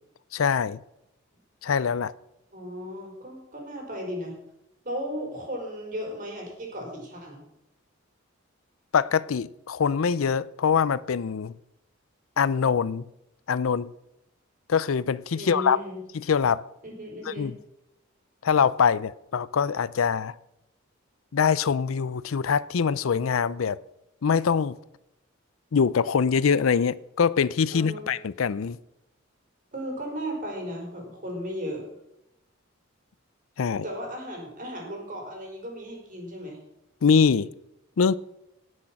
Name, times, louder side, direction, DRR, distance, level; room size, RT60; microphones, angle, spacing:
voice 1, 0.3-0.8 1.6-2.1 8.9-11.5 12.4-13.1 13.5-13.9 14.7-15.8 16.1-16.6 17.3-17.5 18.4-20.4 21.3-23.8 24.2-24.8 25.7-28.8 33.6-33.8 37.0-37.5 38.0-38.2, left 6 dB, 85° left, 0.5 m, -23 dB
voice 2, 2.5-4.4 4.8-7.4 15.3-16.0 16.8-17.5 27.7-28.1 29.7-31.8 33.8-36.6, equal, 40° right, 4.6 m, -35 dB
17.5 x 6.5 x 5.9 m
head